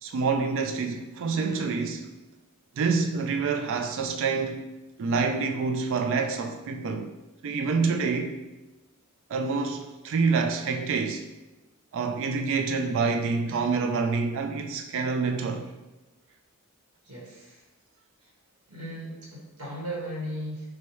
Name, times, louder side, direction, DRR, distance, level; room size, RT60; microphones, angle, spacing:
voice 1, 0.0-2.1 2.7-4.7 5.0-7.1 7.4-8.4 9.3-11.3 11.9-15.7, right 4 dB, 60° right, 0.3 m, -27 dB
voice 2, 17.0-17.6 18.2-18.3 18.7-20.6, equal, 85° right, 1.3 m, -37 dB
6.2 x 2.2 x 3.0 m
head